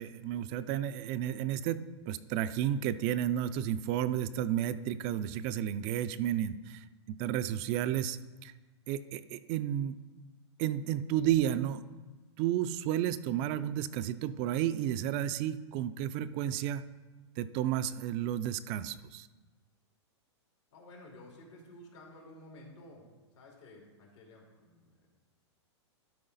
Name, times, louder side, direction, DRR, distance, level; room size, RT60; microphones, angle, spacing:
voice 1, 0.0-8.5 8.9-10.0 10.6-11.8 12.4-16.8 17.4-19.3, right 11 dB, 40° right, 14 dB, 0.4 m, -32 dB
voice 2, 20.7-23.0 23.3-25.1, left 1 dB, 75° left, -2 dB, 2.7 m, -53 dB
12.0 x 4.8 x 4.0 m, 1.2 s
hypercardioid pair, 120°, 15 cm